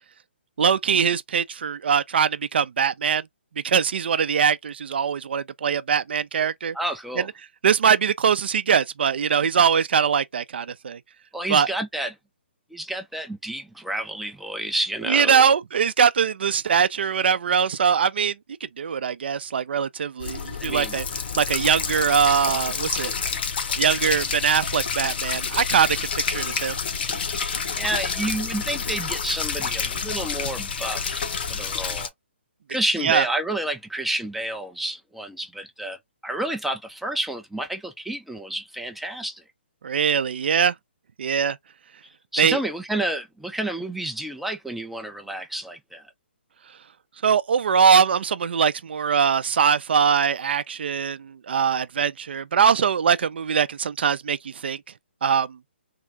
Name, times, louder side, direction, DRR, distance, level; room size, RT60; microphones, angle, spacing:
voice 1, 0.6-3.3 3.6-6.8 7.6-11.0 11.5-11.7 15.1-18.4 18.8-21.0 21.4-23.1 23.8-26.0 26.3-26.8 33.0-33.3 39.8-40.7 41.2-41.6 42.4-42.6 47.2-54.8 55.2-55.6, right 7 dB, 60° right, 0.5 m, -22 dB
voice 2, 6.7-7.3 11.3-12.2 12.7-15.4 20.6-20.9 27.2-32.1 32.7-36.0 36.2-39.4 42.0-46.0, right 1 dB, ahead, 0.5 m, -30 dB
sound 1, 20.2-32.1, left 6 dB, 60° left, 1.0 m, -28 dB
3.6 x 2.5 x 3.2 m
hypercardioid pair, 140°, 6 cm